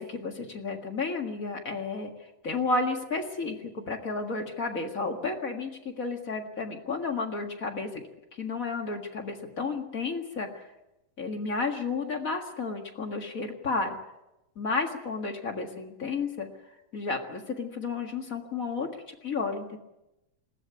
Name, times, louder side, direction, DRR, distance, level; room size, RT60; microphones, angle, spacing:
voice 1, 0.0-2.1 2.4-5.7 6.0-8.0 8.4-10.5 11.2-14.0 14.6-16.5 16.9-18.9 19.2-19.8, left 3 dB, 35° left, 2 dB, 1.4 m, -32 dB
21.0 x 15.5 x 9.7 m, 0.95 s
omnidirectional pair, 4.1 m